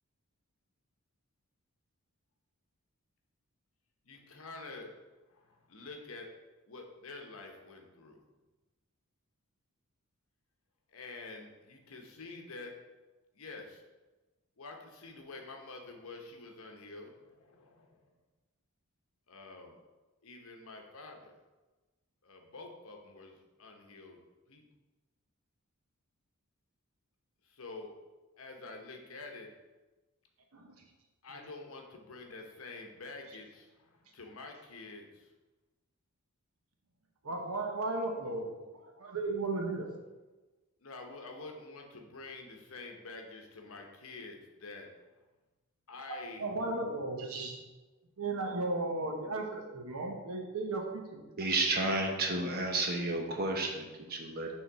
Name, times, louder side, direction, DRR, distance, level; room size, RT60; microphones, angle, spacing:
voice 1, 4.0-4.9 5.3-6.3 6.7-8.2 10.9-12.7 13.3-13.8 14.6-18.0 19.3-19.8 20.2-21.4 22.2-24.2 24.5-24.6 27.4-27.9 28.4-29.5 31.2-35.3 40.8-44.9 45.9-46.7, left 3 dB, 65° left, 2 dB, 0.9 m, -48 dB
voice 2, 37.2-38.5 39.0-39.9 46.1-47.6 48.2-51.2, right 2 dB, 70° right, 2 dB, 1.0 m, -35 dB
voice 3, 51.4-54.5, right 2 dB, 45° right, 1 dB, 0.9 m, -31 dB
6.4 x 3.8 x 4.7 m, 1.2 s
head